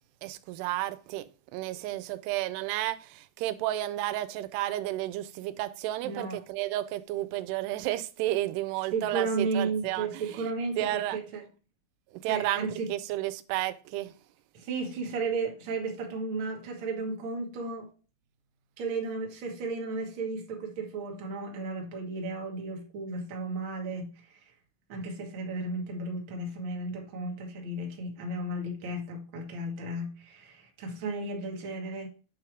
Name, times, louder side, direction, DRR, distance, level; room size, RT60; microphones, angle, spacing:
voice 1, 0.2-10.4 10.8-11.2 12.2-14.1, right 15 dB, 90° right, 2.6 m, -32 dB
voice 2, 6.0-6.4 8.9-11.4 12.2-12.9 14.5-17.9 18.8-24.4 24.9-32.1, right 3 dB, 65° right, 1.2 m, -34 dB
8.2 x 3.5 x 4.6 m
omnidirectional pair, 4.6 m